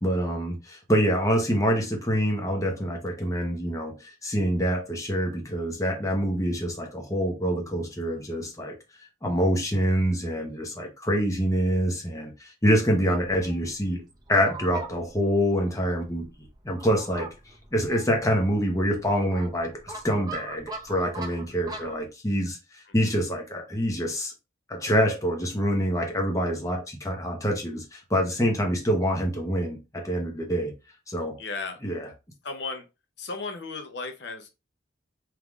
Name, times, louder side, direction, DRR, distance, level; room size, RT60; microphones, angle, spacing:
voice 1, 0.0-8.7 9.2-14.0 14.3-16.3 16.6-17.3 17.7-24.3 24.7-30.7 31.1-31.4 31.8-32.1, equal, 15° left, 0.9 m, -26 dB
Fowl, 13.0-22.0, right 3 dB, 20° right, 0.6 m, -42 dB
voice 2, 31.4-31.8 32.4-32.8 33.2-34.5, left 3 dB, 60° left, 0.6 m, -35 dB
4.5 x 3.6 x 2.4 m
head